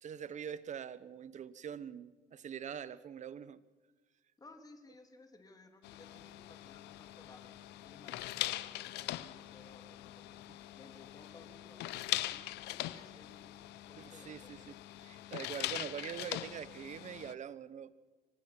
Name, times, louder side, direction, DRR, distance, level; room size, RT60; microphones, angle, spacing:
voice 1, 0.0-3.6 10.5-10.6 14.0-14.7 15.0-17.9, right 8 dB, 45° right, 16 dB, 1.1 m, -44 dB
voice 2, 4.4-10.3 10.7-12.4 12.7-13.6 13.9-14.5, left 2 dB, 20° left, 5 dB, 3.0 m, -59 dB
sound 1, 5.8-17.3, left 16 dB, 85° left, 0.8 m, -42 dB
24.5 x 19.5 x 6.0 m, 1.3 s
cardioid pair, 110°, 17 cm